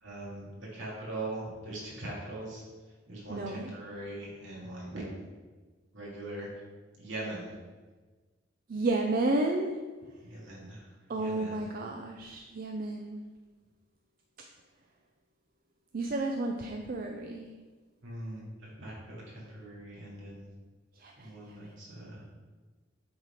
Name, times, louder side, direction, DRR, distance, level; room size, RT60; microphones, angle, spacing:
voice 1, 0.0-2.6 3.1-5.1 5.9-6.5 7.0-7.5 10.2-10.8 11.2-11.6 18.0-20.5 21.2-22.2, right 1 dB, 70° right, -5 dB, 2.2 m, -41 dB
voice 2, 3.3-3.8 8.7-9.8 11.1-13.2 15.9-17.5 21.0-21.6, right 2 dB, 45° right, 2 dB, 0.4 m, -32 dB
7.7 x 3.8 x 4.5 m, 1.3 s
head